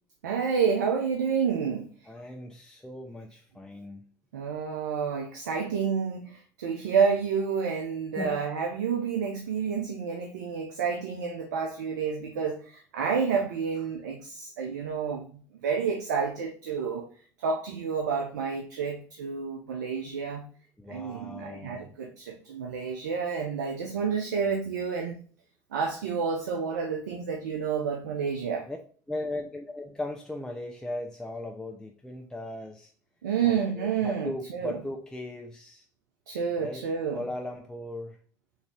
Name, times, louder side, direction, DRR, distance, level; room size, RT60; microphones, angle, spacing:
voice 1, 0.2-1.9 4.3-17.1 17.4-20.5 20.9-25.2 25.7-28.7 33.2-34.8 36.3-37.2, right 6 dB, 85° right, 4 dB, 0.5 m, -29 dB
voice 2, 2.1-4.0 8.2-8.4 20.8-22.0 28.7-28.8 29.1-32.9 33.4-35.8 36.6-36.8 37.1-38.2, left 1 dB, 5° left, 1 dB, 0.5 m, -38 dB
3.6 x 2.6 x 3.2 m, 0.43 s
hypercardioid pair, 75°, 9 cm